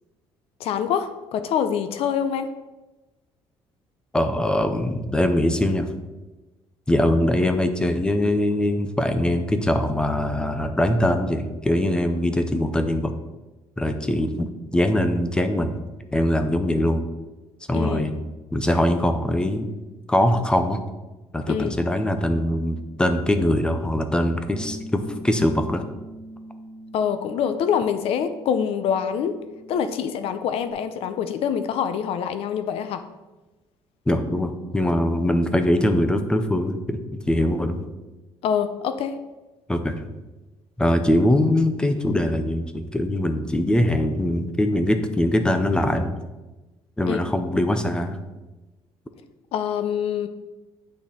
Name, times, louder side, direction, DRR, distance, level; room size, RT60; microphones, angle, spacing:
voice 1, 0.6-2.5 17.7-18.1 21.5-21.8 26.9-29.4 29.7-33.0 38.4-39.2 47.1-47.2 49.5-50.3, left 8 dB, 65° left, 10 dB, 0.6 m, -25 dB
voice 2, 4.1-5.9 6.9-13.1 13.8-15.8 16.1-17.0 17.7-18.2 18.5-19.7 20.1-20.8 21.3-25.8 34.1-37.9 39.7-40.0 40.8-46.2 47.0-48.2, left 1 dB, 10° left, 8 dB, 0.6 m, -22 dB
Bass guitar, 24.5-30.7, equal, 40° right, 1.3 m, -42 dB
8.5 x 6.0 x 4.2 m, 1.1 s
cardioid pair, 155°, 11 cm